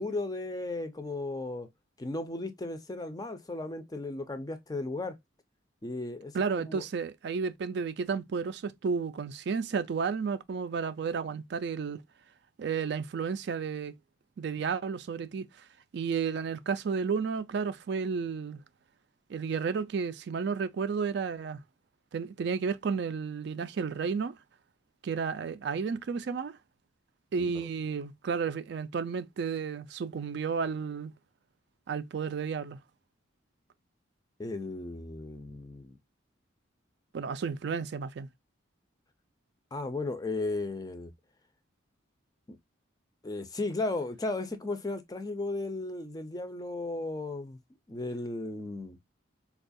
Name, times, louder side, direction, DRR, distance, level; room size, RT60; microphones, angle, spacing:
voice 1, 0.0-1.7 2.0-5.2 5.8-6.8 27.4-27.7 34.4-36.0 39.7-41.1 42.5-42.6 43.2-47.6 47.9-49.0, left 2 dB, 20° left, 0.4 m, -35 dB
voice 2, 6.3-12.0 12.6-13.9 14.4-15.7 15.9-18.6 19.3-21.6 22.1-24.3 25.0-26.6 27.3-31.1 31.9-32.8 37.1-38.3, right 5 dB, 60° right, 0.3 m, -32 dB
4.3 x 2.3 x 2.5 m
head